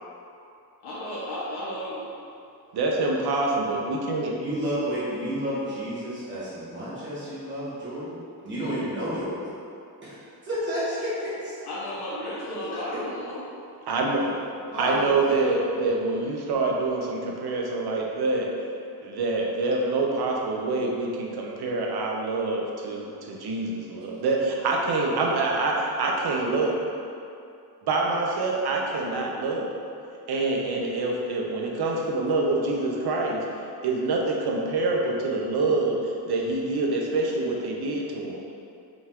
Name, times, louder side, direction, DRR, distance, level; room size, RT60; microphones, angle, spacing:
voice 1, 0.8-2.1 8.6-8.7 11.6-13.4 31.9-32.0, left 1 dB, 75° left, -8 dB, 0.8 m, -34 dB
voice 2, 2.7-4.3 13.9-14.2 14.7-18.5 19.0-26.8 27.9-29.8 30.3-33.4 33.8-38.4, right 3 dB, 75° right, -1 dB, 0.7 m, -26 dB
voice 3, 4.4-8.2 8.4-9.4 10.5-11.5 12.5-13.0 14.6-15.1, equal, 30° right, -11 dB, 1.3 m, -31 dB
5.1 x 2.4 x 3.5 m, 2.6 s
wide cardioid pair, 155°, 39 cm